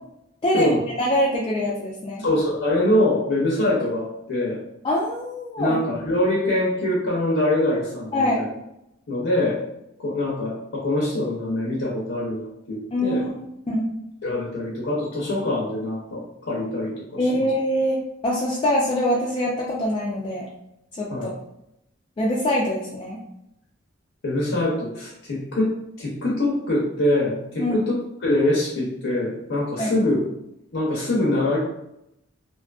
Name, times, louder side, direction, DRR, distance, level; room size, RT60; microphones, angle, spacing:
voice 1, 0.4-0.7 1.0-2.2 4.8-5.8 8.1-8.5 12.9-13.9 17.2-20.5 20.9-21.3 22.2-23.2 27.6-27.9 29.8-29.9, left 1 dB, 25° left, -4 dB, 0.3 m, -24 dB
voice 2, 2.2-4.6 5.6-8.5 9.1-9.6 10.0-13.2 14.2-16.9 17.2-17.5 21.1-21.3 24.2-27.9 28.2-30.2 30.7-31.6, left 1 dB, 75° left, -5 dB, 0.6 m, -24 dB
2.6 x 2.3 x 2.3 m, 0.82 s
head